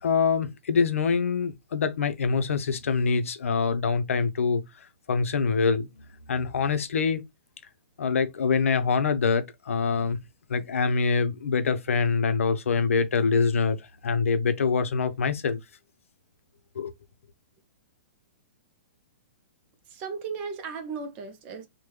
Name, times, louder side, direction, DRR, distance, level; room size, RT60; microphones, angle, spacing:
voice 1, 0.0-7.2 8.0-10.2 10.5-15.6 16.7-16.9, left 5 dB, 90° left, 0.7 m, -25 dB
voice 2, 19.9-21.7, right 5 dB, 20° right, 0.5 m, -36 dB
3.6 x 2.2 x 3.1 m
hypercardioid pair, 170°, 7 cm